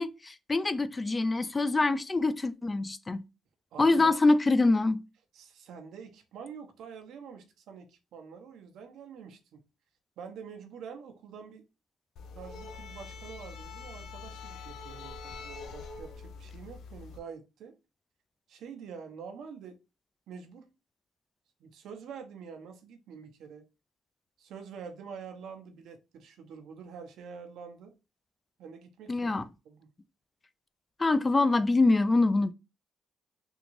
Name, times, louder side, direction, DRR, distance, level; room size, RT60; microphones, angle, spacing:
voice 1, 0.0-3.2 3.8-5.0 29.1-29.4 31.0-32.5, left 3 dB, 25° left, 0.3 m, -25 dB
voice 2, 3.7-4.2 5.3-9.6 10.2-11.6 12.3-17.7 18.5-19.8 20.3-20.7 21.6-23.7 24.4-27.9 28.6-29.3 29.6-29.9, right 6 dB, 80° right, 0.8 m, -46 dB
sound 1, 12.2-17.2, left 4 dB, 80° left, 0.5 m, -44 dB
3.6 x 2.5 x 3.1 m
cardioid pair, 90°, 0 cm